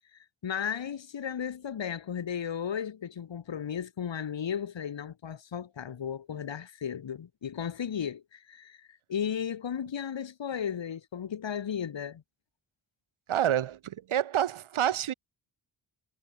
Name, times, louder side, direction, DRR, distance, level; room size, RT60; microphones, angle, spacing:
voice 1, 0.4-12.2, left 8 dB, 65° left, 3.8 m, -35 dB
voice 2, 13.3-15.1, right 10 dB, 80° right, 3.0 m, -28 dB
cardioid pair, 70°, 48 cm